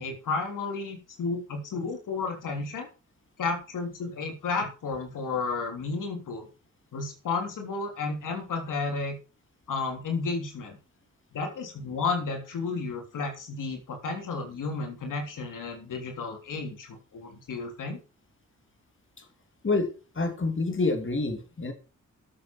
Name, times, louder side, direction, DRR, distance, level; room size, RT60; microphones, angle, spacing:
voice 1, 0.0-2.9 3.4-6.5 6.9-9.1 9.7-10.8 11.3-18.0, left 4 dB, 85° left, 4 dB, 3.4 m, -32 dB
voice 2, 20.1-21.7, left 3 dB, 40° left, 6 dB, 3.0 m, -27 dB
12.5 x 7.6 x 6.1 m, 0.34 s
cardioid pair, 65°, 31 cm